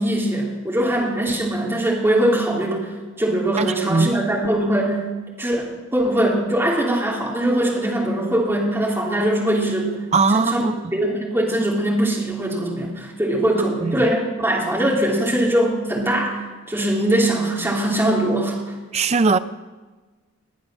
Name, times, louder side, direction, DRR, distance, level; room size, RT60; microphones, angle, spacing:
voice 1, 0.0-2.8 3.2-5.0 5.4-5.7 5.9-9.9 10.3-18.6, right 1 dB, 10° right, 3.1 m, -21 dB
voice 2, 3.6-4.1 10.1-10.7 13.8-14.0 18.9-19.4, right 4 dB, 30° right, 0.4 m, -19 dB
19.5 x 10.5 x 6.3 m
head